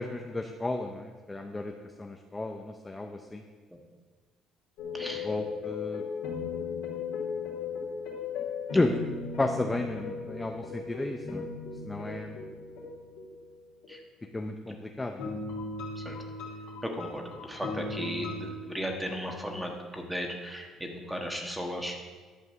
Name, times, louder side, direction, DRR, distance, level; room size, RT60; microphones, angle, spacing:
voice 1, 0.0-1.7 2.0-3.4 5.2-6.0 8.7-8.9 9.4-11.5 11.8-12.4 14.3-15.3 18.2-18.4, left 2 dB, 10° left, 3 dB, 0.5 m, -32 dB
sound 1, 4.8-14.0 15.2-18.5, left 4 dB, 80° left, 2.6 m, -37 dB
voice 2, 4.9-5.3 8.7-8.8 13.9-14.0 16.0-16.2 16.8-22.0, equal, 5° right, 2 dB, 1.3 m, -36 dB
11.0 x 5.1 x 7.2 m, 1.4 s
cardioid pair, 150°, 0 cm